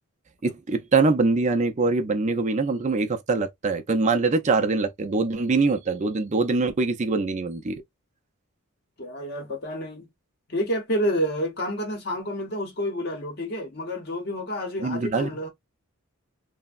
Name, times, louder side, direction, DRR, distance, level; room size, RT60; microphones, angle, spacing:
voice 1, 0.4-7.7 14.8-15.3, right 3 dB, 30° right, 0.4 m, -23 dB
voice 2, 9.0-10.1 10.5-15.5, equal, 45° left, 0.8 m, -29 dB
3.3 x 2.0 x 2.4 m
head